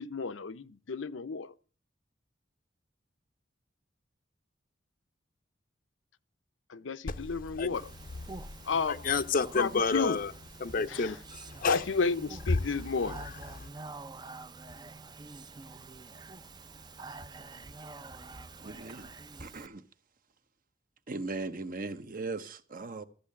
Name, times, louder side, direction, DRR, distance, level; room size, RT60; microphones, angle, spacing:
voice 1, 0.0-1.5 6.7-7.9 8.6-9.0 9.5-10.2 10.9-11.2 11.7-13.2, left 5 dB, 85° left, 0.7 m, -32 dB
Speech, 7.7-19.7, right 3 dB, 20° right, 0.5 m, -47 dB
voice 2, 8.9-10.3 10.6-11.8 13.6-13.7, left 4 dB, 45° left, 0.6 m, -30 dB
voice 3, 18.6-19.1 19.4-19.8 21.1-23.0, right 3 dB, 45° right, 1.0 m, -38 dB
14.0 x 6.6 x 8.5 m
head